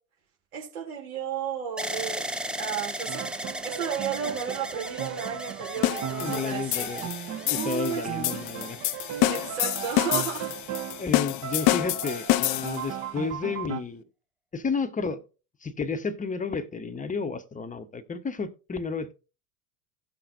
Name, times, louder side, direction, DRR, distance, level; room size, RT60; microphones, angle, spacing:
voice 1, 0.5-2.3 2.6-6.9 7.4-8.4 9.3-10.5, right 8 dB, 65° right, 3.1 m, -33 dB
sound 1, 1.8-9.8 10.5-11.1, right 1 dB, ahead, 0.6 m, -37 dB
Piano, 3.1-11.1 11.4-13.8, right 10 dB, 40° right, 1.0 m, -36 dB
sound 2, 5.8-12.9, left 16 dB, 45° left, 0.6 m, -28 dB
voice 2, 6.2-7.1 7.5-8.8 11.0-14.0 14.5-15.2 15.6-19.1, left 5 dB, 15° left, 0.9 m, -32 dB
17.0 x 5.8 x 2.6 m
figure-of-eight pair, 65°, 45 cm